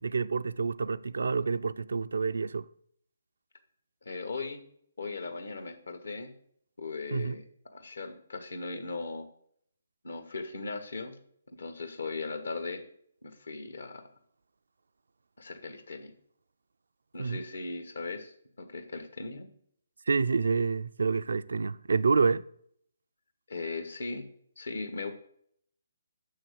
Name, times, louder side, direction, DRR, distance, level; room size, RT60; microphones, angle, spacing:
voice 1, 0.0-2.6 7.1-7.4 17.2-17.4 20.1-22.4, right 4 dB, 70° right, 0.4 m, -28 dB
voice 2, 4.0-4.6 5.0-6.3 6.8-7.4 7.7-9.3 10.0-11.2 11.5-12.8 13.2-14.1 15.4-16.1 17.1-19.5 23.5-24.3 24.6-25.2, left 3 dB, 70° left, 1.3 m, -38 dB
6.7 x 6.4 x 6.6 m
figure-of-eight pair, 140°, 0 cm